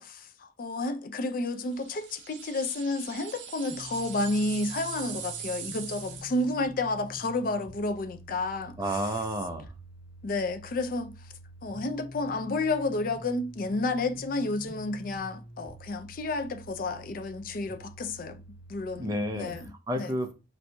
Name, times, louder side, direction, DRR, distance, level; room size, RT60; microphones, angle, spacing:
voice 1, 0.0-8.8 10.2-11.1 11.6-18.4 18.7-20.1, left 2 dB, 50° left, 0.4 m, -31 dB
sound 1, 1.7-6.5, right 8 dB, 75° right, 0.5 m, -41 dB
sound 2, 3.7-19.7, left 1 dB, 80° left, 1.4 m, -47 dB
voice 2, 8.8-9.7 19.0-19.5 19.9-20.3, right 1 dB, 20° right, 0.4 m, -30 dB
4.3 x 2.6 x 2.2 m
head